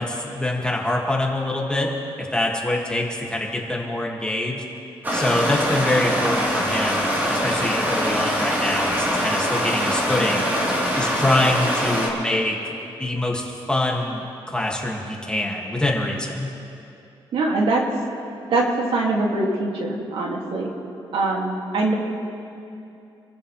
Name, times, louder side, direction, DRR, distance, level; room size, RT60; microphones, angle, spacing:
voice 1, 0.0-1.9 2.2-4.6 5.1-10.5 10.9-16.5, left 1 dB, 10° left, -2 dB, 2.2 m, -25 dB
Stream, 5.0-12.1, equal, 20° right, 3.6 m, -23 dB
voice 2, 17.3-17.8 18.5-18.6 18.9-20.7 21.1-21.9, right 2 dB, 75° right, -1 dB, 2.5 m, -22 dB
27.5 x 14.5 x 3.4 m, 2.7 s
cardioid pair, 120°, 10 cm